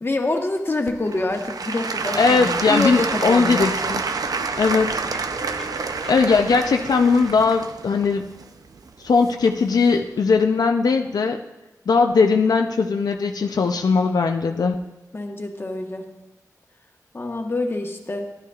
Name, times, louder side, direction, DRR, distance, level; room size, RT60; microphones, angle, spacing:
voice 1, 0.0-3.7 15.1-16.1 17.1-18.3, left 2 dB, 35° left, 3 dB, 1.2 m, -26 dB
Applause / Crowd, 0.9-9.7 10.4-10.5, right 4 dB, 70° right, 0.5 m, -28 dB
sound 1, 2.0-7.5, equal, 5° left, 0.7 m, -41 dB
voice 2, 2.2-4.0 4.6-5.1 6.1-8.3 9.0-11.4 11.9-14.8, left 4 dB, 85° left, 4 dB, 0.4 m, -19 dB
13.0 x 11.0 x 2.4 m, 1.1 s
wide cardioid pair, 80°, 7 cm